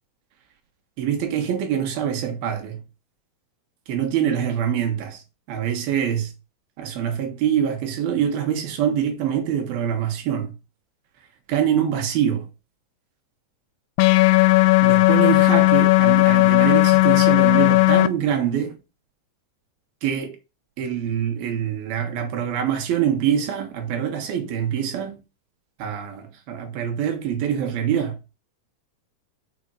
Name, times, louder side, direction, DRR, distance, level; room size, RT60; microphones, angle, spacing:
voice 1, 1.0-2.8 3.9-5.2 5.5-6.3 6.8-10.5 11.5-12.5 14.8-18.7 20.0-20.4 20.8-25.2 25.8-28.2, right 9 dB, 85° right, 3.4 m, -24 dB
sound 1, 14.0-18.1, left 21 dB, 80° left, 2.2 m, -15 dB
6.9 x 5.4 x 6.2 m
omnidirectional pair, 4.2 m